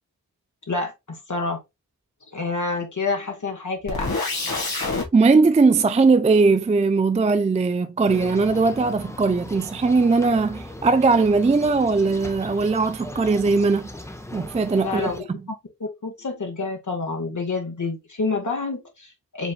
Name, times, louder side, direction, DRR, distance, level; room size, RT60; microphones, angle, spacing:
voice 1, 0.7-1.6 2.3-4.2 14.8-15.2 15.8-19.5, left 3 dB, 55° left, 1.0 m, -28 dB
sound 1, 3.9-5.1, left 3 dB, 90° left, 1.7 m, -26 dB
voice 2, 5.1-13.9 14.3-15.4, right 4 dB, 20° right, 0.3 m, -19 dB
sound 2, 8.1-15.2, left 1 dB, 10° left, 0.7 m, -38 dB
5.0 x 3.2 x 2.3 m
wide cardioid pair, 45°, 36 cm